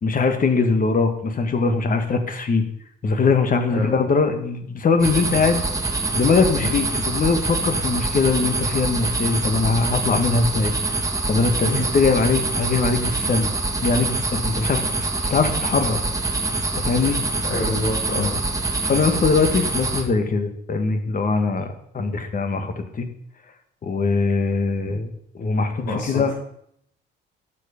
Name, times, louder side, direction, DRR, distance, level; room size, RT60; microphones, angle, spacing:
voice 1, 0.0-2.7 3.0-5.6 6.1-10.7 11.3-13.5 13.8-14.9 15.2-16.0 16.7-17.2 18.8-23.1 23.8-25.1 25.4-26.3, left 4 dB, 45° left, 7 dB, 1.7 m, -21 dB
sound 1, 5.0-20.0, right 3 dB, 15° right, 1.7 m, -25 dB
voice 2, 17.5-18.4 24.9-25.0 25.8-26.3, left 1 dB, 80° left, -5 dB, 4.4 m, -26 dB
12.0 x 7.4 x 5.3 m, 0.69 s
cardioid pair, 90°, 20 cm